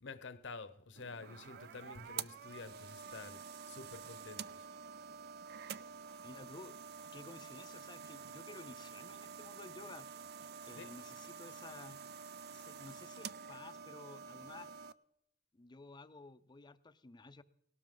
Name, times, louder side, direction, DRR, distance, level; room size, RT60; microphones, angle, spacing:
voice 1, 0.0-4.7 10.8-10.9, left 4 dB, 75° left, 13 dB, 0.9 m, -49 dB
sound 1, 1.0-14.9, right 7 dB, 60° right, 0.4 m, -49 dB
voice 2, 6.2-10.1 10.7-12.0 12.5-14.7 15.5-17.4, left 3 dB, 25° left, 13 dB, 0.5 m, -53 dB
18.5 x 12.5 x 3.9 m, 0.80 s
head